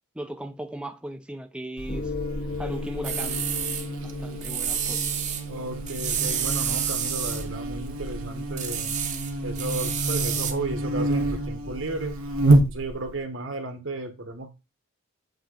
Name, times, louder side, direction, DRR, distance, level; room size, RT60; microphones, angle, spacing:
voice 1, 0.1-2.1 2.6-3.5 4.0-5.1, right 1 dB, 5° right, 0.5 m, -37 dB
Buzz, 1.8-13.2, right 2 dB, 85° right, 1.2 m, -28 dB
Gong, 1.9-12.5, left 2 dB, 45° left, 0.9 m, -38 dB
sound 1, 3.0-3.9 4.4-5.4 5.9-7.4 8.6-10.5, right 8 dB, 35° right, 0.8 m, -29 dB
voice 2, 5.5-8.9 9.4-12.2 12.7-14.5, right 2 dB, 60° right, 1.3 m, -34 dB
7.9 x 3.0 x 5.0 m
head